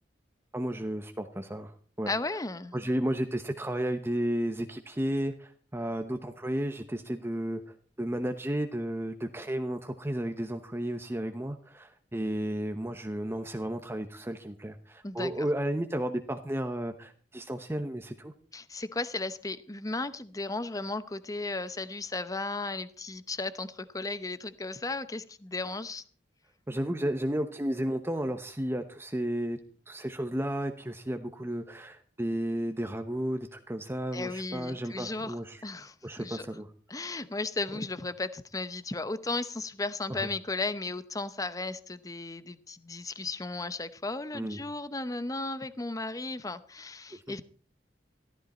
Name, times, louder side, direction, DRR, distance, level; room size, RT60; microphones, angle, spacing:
voice 1, 0.5-2.1 2.7-18.3 26.7-29.6 29.9-35.6 36.0-36.7 37.7-37.8 40.1-40.3 44.3-44.6 47.3-47.4, right 1 dB, 15° right, 6 dB, 0.9 m, -33 dB
voice 2, 2.1-2.7 15.0-15.5 18.5-26.0 34.1-35.3 35.6-36.5 36.9-47.4, left 3 dB, 20° left, 14 dB, 0.8 m, -35 dB
14.5 x 13.5 x 4.3 m, 0.41 s
head